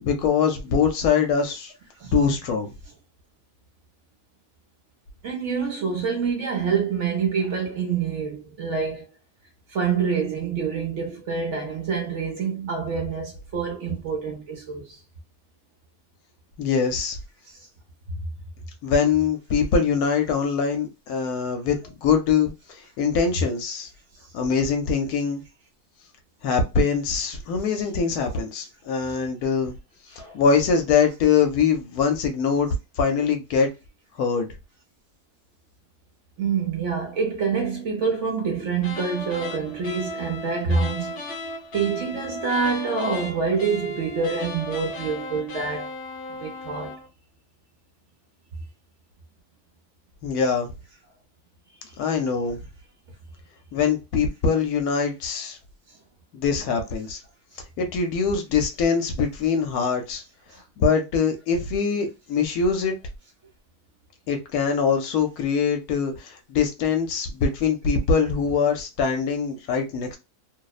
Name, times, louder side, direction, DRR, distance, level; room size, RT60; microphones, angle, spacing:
voice 1, 0.0-1.7 2.1-2.7 16.6-17.2 18.8-22.5 23.0-23.9 24.3-25.4 26.4-29.7 30.3-32.7 33.0-33.7 34.2-34.5 50.2-50.7 52.0-52.6 53.7-55.6 56.3-57.2 57.8-60.2 60.8-62.9 64.3-70.2, left 6 dB, 70° left, 1.0 m, -23 dB
voice 2, 5.2-9.1 9.7-15.0 18.1-18.2 30.1-30.4 36.4-41.1 41.7-46.0 46.4-47.0, right 5 dB, 60° right, 0.9 m, -26 dB
sound 1, 38.8-47.1, left 2 dB, 50° left, 0.7 m, -35 dB
2.8 x 2.0 x 2.3 m
omnidirectional pair, 1.7 m